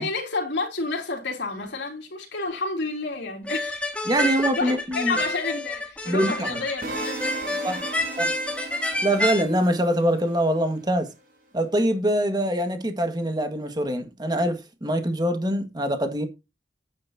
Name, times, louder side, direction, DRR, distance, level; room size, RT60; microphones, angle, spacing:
voice 1, 0.0-3.9 4.2-7.6 7.9-8.0, left 3 dB, 85° left, 3.2 m, -30 dB
sound 1, 3.5-9.4, left 1 dB, 5° left, 2.0 m, -29 dB
voice 2, 4.1-5.1 6.1-6.5 7.6-7.8 8.2-8.3 9.0-11.1 11.5-16.3, right 1 dB, 25° right, 1.7 m, -24 dB
sound 2, 6.8-10.9, right 3 dB, 50° right, 6.0 m, -37 dB
9.7 x 9.5 x 2.8 m
head